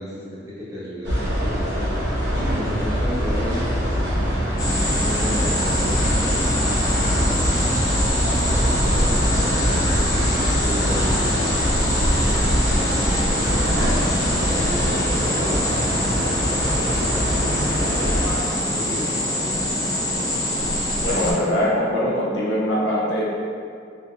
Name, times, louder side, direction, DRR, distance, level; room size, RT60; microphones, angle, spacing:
voice 1, 0.0-4.4 5.0-7.3 8.4-13.9 14.4-18.2 18.6-19.2, equal, 15° right, -9 dB, 0.6 m, -34 dB
sound 1, 1.0-18.4, equal, 75° right, 0.8 m, -23 dB
sound 2, 4.6-21.3, equal, 20° left, 0.3 m, -24 dB
voice 2, 21.0-23.2, equal, 70° left, -6 dB, 0.6 m, -22 dB
2.5 x 2.4 x 2.3 m, 2.3 s
head